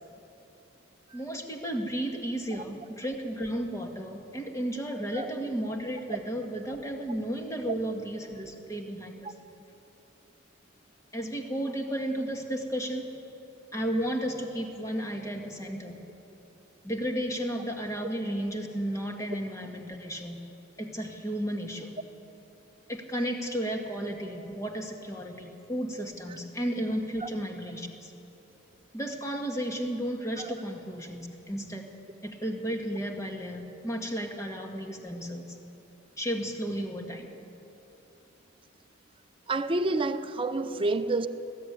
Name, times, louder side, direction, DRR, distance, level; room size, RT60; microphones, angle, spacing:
voice 1, 1.1-9.3 11.1-13.1 13.7-16.0 16.8-20.4 20.8-22.0 22.9-28.1 28.9-31.9 32.2-35.6 36.2-37.4, equal, 15° left, 1.7 m, -33 dB
voice 2, 39.5-41.3, right 2 dB, 25° right, 0.7 m, -28 dB
21.0 x 14.5 x 9.6 m
head